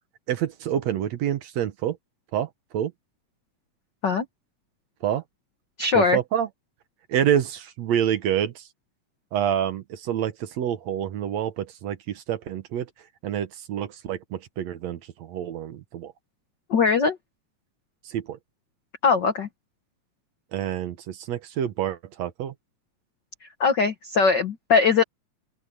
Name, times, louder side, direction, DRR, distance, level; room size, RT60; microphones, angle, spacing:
voice 1, 0.3-2.0 2.3-2.5 2.7-2.9 5.0-5.2 5.9-6.5 7.1-8.6 9.3-12.9 13.2-16.1 18.1-18.4 20.5-22.5, right 10 dB, 65° right, 2.0 m, -27 dB
voice 2, 5.8-6.2 16.7-17.2 19.0-19.5 23.6-25.0, left 5 dB, 75° left, 1.0 m, -20 dB
open air
omnidirectional pair, 3.7 m